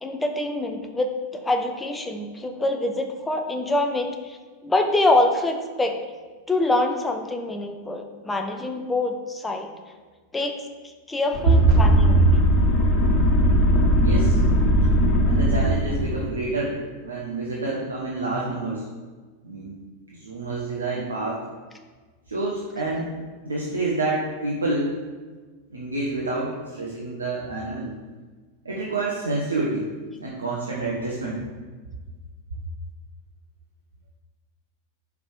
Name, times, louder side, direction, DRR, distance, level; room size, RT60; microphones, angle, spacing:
voice 1, 0.0-6.0 6.5-9.7 10.3-10.6 11.1-12.3, left 2 dB, 10° left, 4 dB, 0.7 m, -25 dB
sound 1, 11.3-16.2, equal, 35° left, 0.9 m, -19 dB
voice 2, 14.0-14.4 15.2-18.9 19.4-19.8 20.1-21.4 22.3-23.2 23.4-24.9 25.7-27.9 28.6-29.9 30.2-31.4, right 2 dB, 75° right, -4 dB, 0.9 m, -28 dB
5.1 x 4.7 x 5.2 m, 1.4 s
figure-of-eight pair, 90°, 0 cm